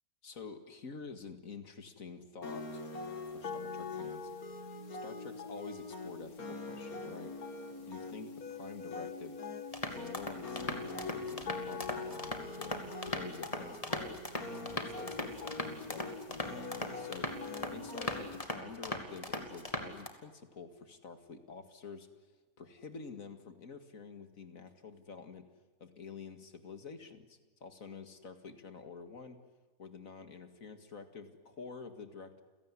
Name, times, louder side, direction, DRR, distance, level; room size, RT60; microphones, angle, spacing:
voice 1, 0.2-3.0 3.2-4.3 5.0-7.3 7.8-9.4 9.8-14.2 14.7-22.3 22.6-25.4 25.8-29.4 29.8-32.4, left 5 dB, 65° left, 8 dB, 2.4 m, -48 dB
sound 1, 2.4-18.4, left 4 dB, 80° left, 2.6 m, -43 dB
sound 2, 9.7-20.1, left 1 dB, 25° left, 2.5 m, -39 dB
29.5 x 17.0 x 9.9 m, 1.2 s
omnidirectional pair, 1.5 m